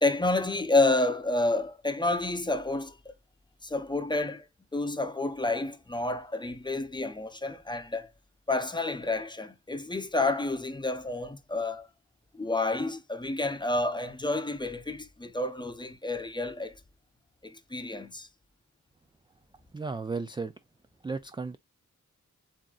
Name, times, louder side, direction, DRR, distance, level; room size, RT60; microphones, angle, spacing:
voice 1, 0.0-3.1 3.6-4.5 4.7-8.1 8.5-11.9 12.3-16.8 17.4-18.3, left 2 dB, 15° left, 0.7 m, -29 dB
voice 2, 19.7-20.5 21.0-21.6, right 4 dB, 15° right, 0.3 m, -34 dB
7.3 x 2.7 x 2.4 m
wide cardioid pair, 140°, 31 cm